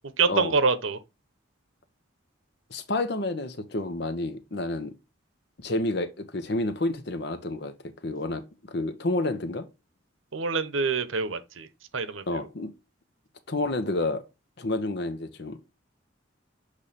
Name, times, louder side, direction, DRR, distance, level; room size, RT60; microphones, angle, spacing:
voice 1, 0.2-1.0 10.3-11.7 11.9-12.5, right 4 dB, 85° right, 0.9 m, -26 dB
voice 2, 2.7-4.9 5.6-7.7 8.0-9.7 12.3-12.7 13.5-14.2 14.6-15.7, left 2 dB, 55° left, 0.9 m, -29 dB
7.1 x 3.3 x 4.1 m
head